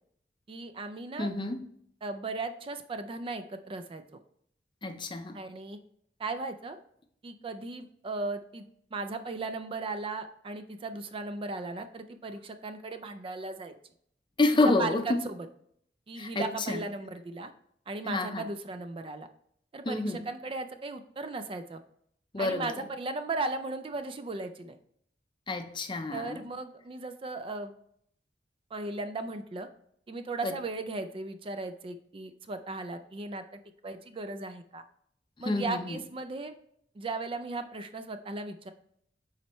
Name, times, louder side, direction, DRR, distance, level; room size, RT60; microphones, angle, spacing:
voice 1, 0.5-1.3 2.0-4.2 5.3-5.8 6.2-6.8 7.2-8.7 8.9-13.7 14.8-15.5 16.1-17.5 17.9-19.3 19.7-21.8 22.4-24.8 26.1-27.7 28.7-29.7 30.1-34.8 35.4-36.5 37.0-38.7, right 3 dB, 30° right, 9 dB, 0.4 m, -37 dB
voice 2, 1.2-1.6 4.8-5.4 14.4-15.2 16.2-16.8 18.0-18.4 19.9-20.2 22.3-22.7 25.5-26.4 30.4-30.5 35.5-36.0, left 2 dB, 30° left, 7 dB, 0.5 m, -28 dB
7.3 x 4.3 x 3.0 m, 0.68 s
head